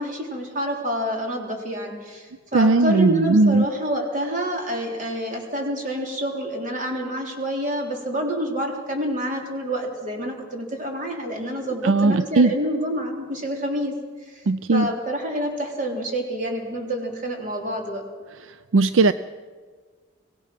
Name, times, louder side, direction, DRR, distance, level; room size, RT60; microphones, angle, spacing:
voice 1, 0.0-13.9 14.3-14.4 14.7-18.0, equal, 40° right, 1 dB, 3.7 m, -28 dB
voice 2, 2.5-3.6 11.8-12.5 14.5-14.9 18.7-19.1, right 3 dB, 75° right, 14 dB, 0.5 m, -17 dB
24.5 x 18.0 x 6.0 m, 1.5 s
head